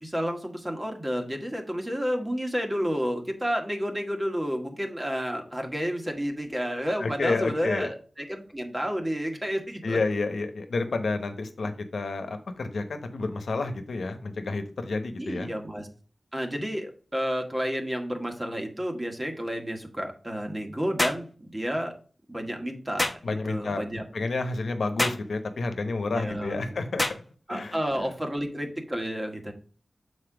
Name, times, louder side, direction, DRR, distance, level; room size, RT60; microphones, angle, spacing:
voice 1, 0.0-10.0 15.2-15.9 16.3-21.9 22.3-23.1 23.4-24.0 26.1-26.7 27.5-29.5, equal, 20° right, 3 dB, 1.7 m, -31 dB
voice 2, 7.0-7.9 9.8-15.5 23.2-23.8 24.1-27.0 27.5-28.1, left 3 dB, 85° left, 8 dB, 1.0 m, -30 dB
sound 1, 21.0-21.3 23.0-23.2 25.0-25.3 27.0-27.2, left 1 dB, 25° left, 1.1 m, -26 dB
6.9 x 4.3 x 4.9 m, 0.40 s
cardioid pair, 45°, 0 cm